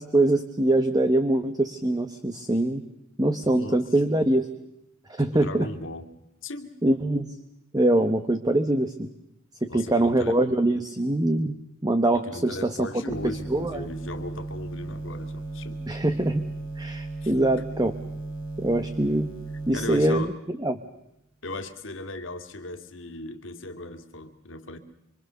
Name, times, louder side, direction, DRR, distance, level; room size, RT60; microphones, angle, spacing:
voice 1, 0.0-2.8 3.2-4.5 5.1-5.7 6.8-7.3 7.7-9.1 9.6-11.6 11.8-12.9 13.2-13.9 15.9-16.4 16.8-17.9 18.6-19.3 19.7-20.3 20.6-20.8, right 1 dB, 20° right, 9 dB, 1.1 m, -23 dB
voice 2, 3.4-3.8 5.3-6.1 6.4-6.7 9.7-10.4 12.1-15.8 17.2-17.3 19.7-20.4 21.4-24.8, left 2 dB, 65° left, 6 dB, 2.3 m, -37 dB
sound 1, 13.1-20.1, right 2 dB, 70° right, 6.2 m, -35 dB
26.0 x 25.0 x 6.9 m, 0.85 s
head